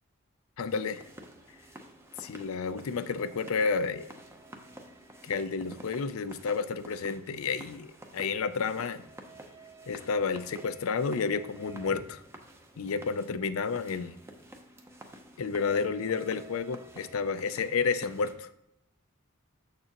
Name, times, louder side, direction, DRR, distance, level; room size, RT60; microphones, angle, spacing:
voice 1, 0.6-1.0 2.2-4.1 5.2-9.0 9.9-12.2 12.8-14.2 15.4-18.5, left 5 dB, 75° left, 13 dB, 0.5 m, -31 dB
sound 1, 0.7-18.3, right 1 dB, 10° right, 0.6 m, -50 dB
6.8 x 6.7 x 2.9 m, 0.79 s
head